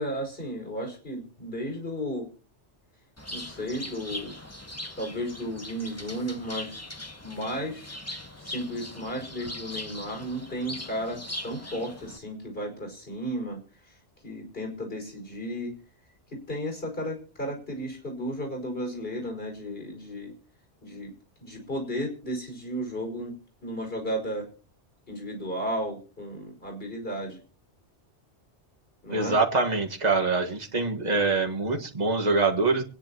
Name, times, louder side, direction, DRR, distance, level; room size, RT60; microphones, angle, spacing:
voice 1, 0.0-2.3 3.3-4.3 5.0-6.8 7.2-8.0 8.4-13.6 13.8-14.0 14.2-15.7 16.3-20.3 20.8-21.1 21.4-23.3 23.6-24.5 25.1-27.4 29.0-29.4, equal, 50° left, 2 dB, 5.5 m, -34 dB
Bird, 3.2-12.2, left 1 dB, 15° left, 1.2 m, -40 dB
voice 2, 29.1-32.8, right 3 dB, 35° right, 2 dB, 1.8 m, -24 dB
26.5 x 10.0 x 3.0 m, 0.37 s
omnidirectional pair, 1.2 m